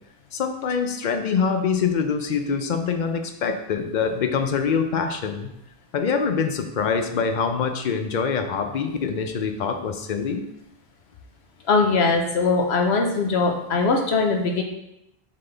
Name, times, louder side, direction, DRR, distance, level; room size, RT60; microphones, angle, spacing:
voice 1, 0.3-5.5 5.9-10.4, left 6 dB, 55° left, 7 dB, 0.7 m, -24 dB
voice 2, 11.7-14.6, left 4 dB, 90° left, 2 dB, 1.1 m, -21 dB
7.5 x 3.9 x 3.3 m, 0.85 s
omnidirectional pair, 1.1 m